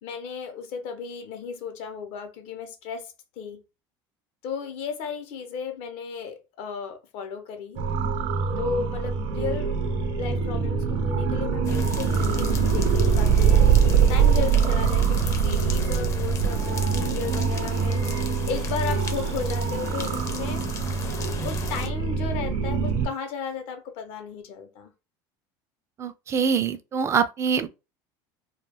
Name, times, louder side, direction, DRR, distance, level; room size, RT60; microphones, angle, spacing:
voice 1, 0.0-3.6 4.4-7.8 8.6-9.7 10.2-13.7 14.1-18.0 18.4-20.7 21.4-24.9, left 6 dB, 65° left, 0.6 m, -34 dB
sound 1, 7.8-23.1, right 6 dB, 60° right, 0.7 m, -23 dB
sound 2, 11.6-21.9, left 5 dB, 30° left, 0.5 m, -37 dB
voice 2, 26.0-27.7, right 6 dB, 30° right, 0.3 m, -24 dB
2.2 x 2.2 x 3.2 m
supercardioid pair, 125°, 10 cm